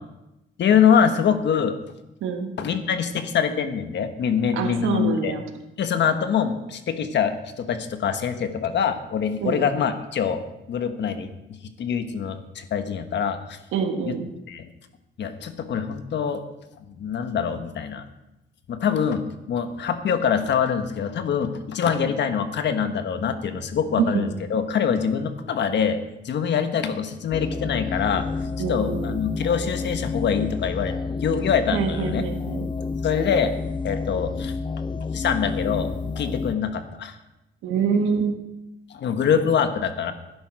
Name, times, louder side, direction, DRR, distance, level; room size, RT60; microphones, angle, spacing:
voice 1, 0.6-1.7 2.6-5.4 5.8-10.4 10.7-11.3 11.8-13.6 14.0-14.1 14.5-14.7 15.2-16.4 17.0-18.0 18.7-26.0 26.2-28.2 28.7-30.9 31.2-32.2 33.0-33.5 33.8-34.5 35.1-37.1 38.9-40.1, left 7 dB, 60° left, 8 dB, 1.4 m, -24 dB
voice 2, 2.2-2.5 4.5-5.4 9.4-9.6 13.7-14.3 23.9-24.2 28.6-29.1 31.7-32.7 37.6-38.3, right 6 dB, 85° right, 5 dB, 1.4 m, -25 dB
sound 1, 27.3-36.5, left 4 dB, 25° left, 0.6 m, -30 dB
12.5 x 10.5 x 5.1 m, 0.94 s
cardioid pair, 90°, 20 cm